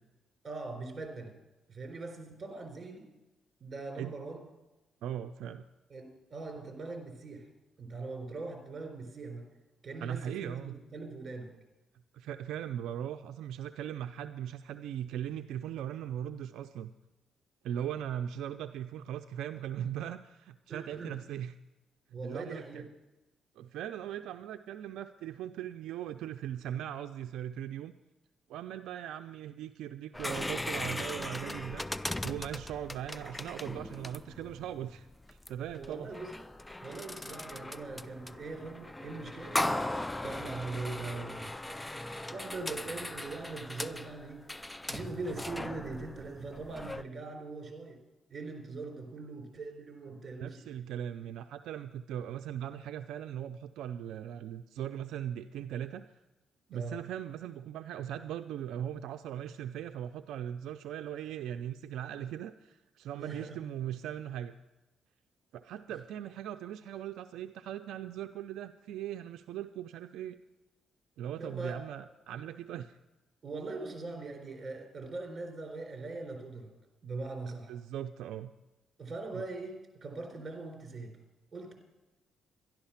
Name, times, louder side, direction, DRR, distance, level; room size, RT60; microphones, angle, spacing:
voice 1, 0.4-1.3 1.7-3.1 3.6-4.5 5.9-7.5 7.8-9.4 9.8-11.5 20.7-21.2 22.1-22.8 35.7-36.3 36.8-39.6 40.2-41.6 42.3-44.4 44.9-48.0 48.3-50.7 56.7-57.0 63.1-63.6 71.4-71.8 73.4-76.7 77.0-77.7 79.0-81.1 81.5-81.7, right 3 dB, 35° right, 3 dB, 4.0 m, -41 dB
voice 2, 5.0-5.6 10.0-10.7 12.1-16.9 17.6-21.5 22.2-22.8 23.6-27.9 28.5-36.1 50.3-56.1 56.7-64.5 65.5-70.4 71.2-73.0 77.7-78.5 79.3-79.4, right 10 dB, 85° right, 8 dB, 0.4 m, -39 dB
sound 1, 30.1-47.0, left 1 dB, 10° left, 0.4 m, -38 dB
12.0 x 11.5 x 5.7 m, 1.0 s
cardioid pair, 90°, 0 cm